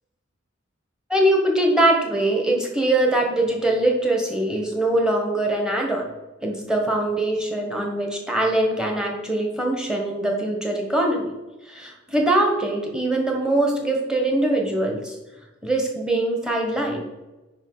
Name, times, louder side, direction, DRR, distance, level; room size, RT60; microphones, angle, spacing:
voice 1, 1.1-6.1 6.4-11.3 11.7-15.2 15.6-17.1, right 1 dB, 5° right, 1 dB, 1.1 m, -22 dB
5.5 x 5.2 x 5.5 m, 1.1 s
head